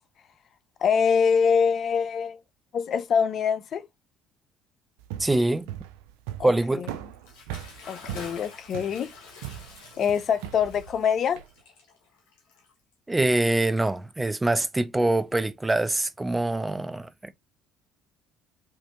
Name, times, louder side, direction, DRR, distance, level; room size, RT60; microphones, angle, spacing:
voice 1, 0.8-2.4 2.7-3.8 6.4-6.5 7.9-9.1 10.0-11.4, left 6 dB, 55° left, 0.5 m, -24 dB
sound 1, 5.0-11.5, right 12 dB, 85° right, 0.5 m, -39 dB
voice 2, 5.2-5.7 6.4-6.9 13.1-17.3, right 2 dB, 15° right, 0.7 m, -24 dB
Bathtub (filling or washing) / Splash splatter, 7.1-13.1, left 4 dB, 75° left, 1.6 m, -47 dB
4.6 x 3.0 x 3.0 m
hypercardioid pair, 70°, 0 cm